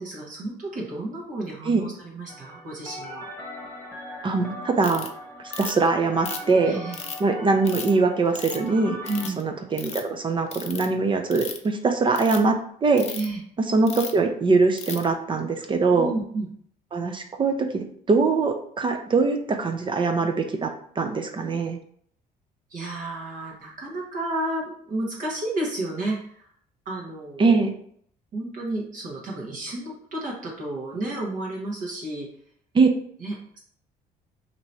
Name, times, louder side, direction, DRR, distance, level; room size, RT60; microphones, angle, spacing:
voice 1, 0.0-3.3 6.6-7.0 9.0-9.4 13.1-13.4 16.0-16.5 22.7-26.5 26.8-27.6 28.3-32.3 33.2-33.6, right 2 dB, 50° right, -4 dB, 1.2 m, -32 dB
sound 1, 2.3-9.3, equal, 10° left, 1.2 m, -40 dB
voice 2, 4.2-5.1 5.6-6.8 7.2-9.0 9.4-12.6 12.8-13.1 13.7-16.1 16.9-21.8 27.4-27.7 32.7-32.9, right 4 dB, 30° right, 5 dB, 0.5 m, -22 dB
Ratchet pawl, 4.8-5.1 5.5-5.9 6.3-7.2 7.6-7.9 8.4-8.7 9.1-9.4 9.7-10.0 10.5-10.9 11.3-11.7 12.1-12.4 13.0-13.3 13.9-14.2 14.8-15.0, left 6 dB, 40° left, 0.5 m, -35 dB
2.9 x 2.7 x 4.4 m, 0.63 s
cardioid pair, 110°, 17 cm